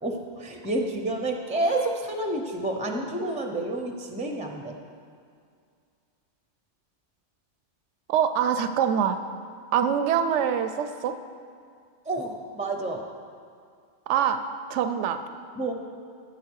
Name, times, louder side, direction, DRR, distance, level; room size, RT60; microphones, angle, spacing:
voice 1, 0.0-4.8 12.0-13.1 15.6-15.7, right 2 dB, 5° right, 3 dB, 0.7 m, -29 dB
voice 2, 8.1-9.2 9.7-11.2 14.1-14.4 14.7-15.2, right 8 dB, 80° right, 9 dB, 0.9 m, -24 dB
13.5 x 9.1 x 4.7 m, 2.2 s
omnidirectional pair, 1.2 m